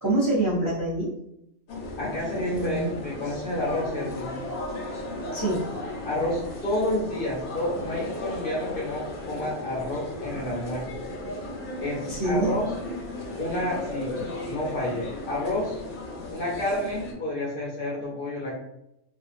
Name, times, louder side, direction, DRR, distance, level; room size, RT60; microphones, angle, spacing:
voice 1, 0.0-1.1 2.5-2.9 5.3-5.9 12.0-12.5, right 2 dB, 20° right, -8 dB, 0.5 m, -26 dB
sound 1, 1.7-17.1, left 2 dB, 90° left, 1.1 m, -35 dB
voice 2, 2.0-4.3 6.0-10.9 11.8-12.7 13.4-14.2 14.5-15.8 16.3-18.5, left 1 dB, 50° left, -4 dB, 0.7 m, -30 dB
2.6 x 2.4 x 2.4 m, 0.82 s
omnidirectional pair, 1.3 m